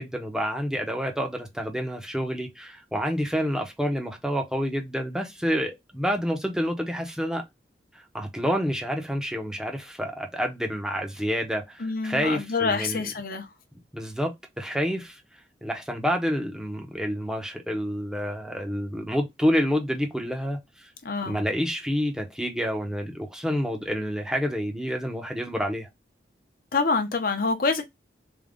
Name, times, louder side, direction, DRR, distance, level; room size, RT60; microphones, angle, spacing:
voice 1, 0.0-7.4 7.9-13.0 13.9-15.2 15.6-20.9 21.3-25.9, equal, 5° right, 0.8 m, -28 dB
voice 2, 11.8-13.5 21.0-21.4 26.7-27.8, left 4 dB, 55° left, 0.8 m, -26 dB
3.6 x 2.3 x 3.5 m
head